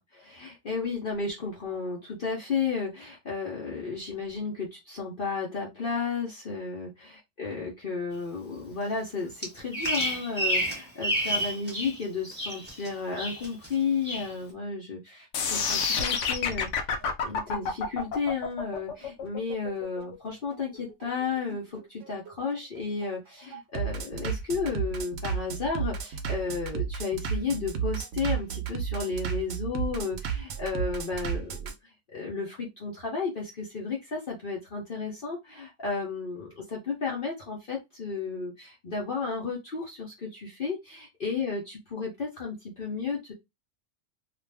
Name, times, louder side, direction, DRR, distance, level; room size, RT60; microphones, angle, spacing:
voice 1, 0.0-16.9 17.2-31.7 32.1-43.3, left 5 dB, 45° left, -2 dB, 1.0 m, -33 dB
Bird vocalization bird call bird song, 9.4-12.0 12.3-12.9 13.2-13.7 14.0-14.3, equal, 10° right, 1.3 m, -29 dB
sound 1, 15.3-21.4, left 5 dB, 75° left, 0.9 m, -29 dB
Bass drum, 15.8-31.7, right 7 dB, 75° right, 0.9 m, -33 dB
2.5 x 2.4 x 3.3 m, 0.20 s
omnidirectional pair, 1.3 m